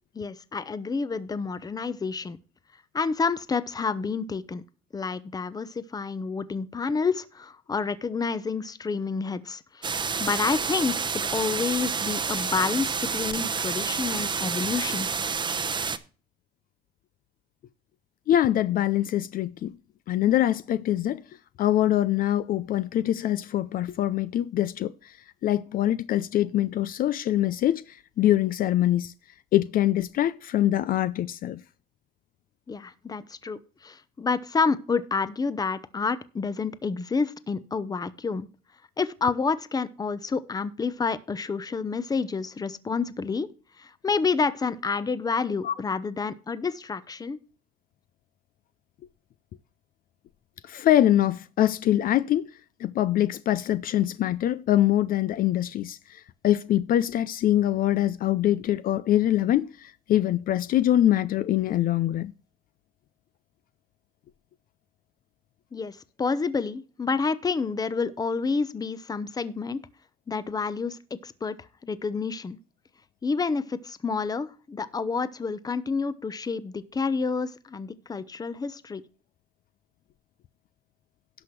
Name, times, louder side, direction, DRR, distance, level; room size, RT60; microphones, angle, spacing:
voice 1, 0.1-2.4 2.9-4.6 4.9-10.9 11.3-15.1 32.7-38.5 39.0-43.5 43.8-47.4 65.7-69.8 70.3-71.6 71.8-72.6 73.2-79.0, left 4 dB, 20° left, 0.8 m, -29 dB
sound 1, 9.8-16.0, right 5 dB, 25° right, 0.8 m, -29 dB
voice 2, 18.3-19.8 20.1-21.2 21.6-25.2 25.4-29.1 29.5-31.6 45.6-45.7 50.6-52.5 52.8-62.3, left 12 dB, 55° left, 0.5 m, -24 dB
17.0 x 6.0 x 3.2 m
cardioid pair, 110°, 17 cm